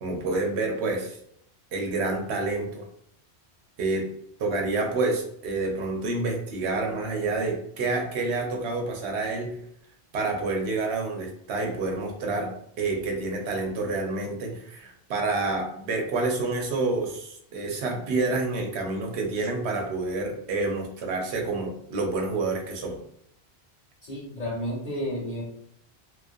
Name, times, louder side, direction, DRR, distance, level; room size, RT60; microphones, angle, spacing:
voice 1, 0.0-1.2 1.7-2.9 3.8-4.1 4.4-9.6 10.1-23.0, right 3 dB, 85° right, 1 dB, 0.9 m, -28 dB
voice 2, 24.0-25.4, equal, 50° left, -5 dB, 0.8 m, -31 dB
2.4 x 2.1 x 2.5 m, 0.71 s
omnidirectional pair, 1.1 m